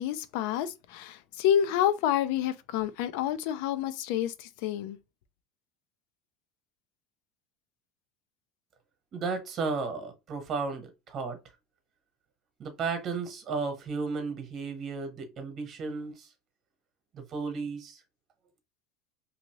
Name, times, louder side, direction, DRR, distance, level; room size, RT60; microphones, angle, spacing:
voice 1, 0.0-5.0, left 10 dB, 75° left, 0.4 m, -28 dB
voice 2, 9.1-11.4 12.6-16.3 17.1-18.0, right 4 dB, 40° right, 1.1 m, -34 dB
2.7 x 2.5 x 3.0 m
supercardioid pair, 110°, 0 cm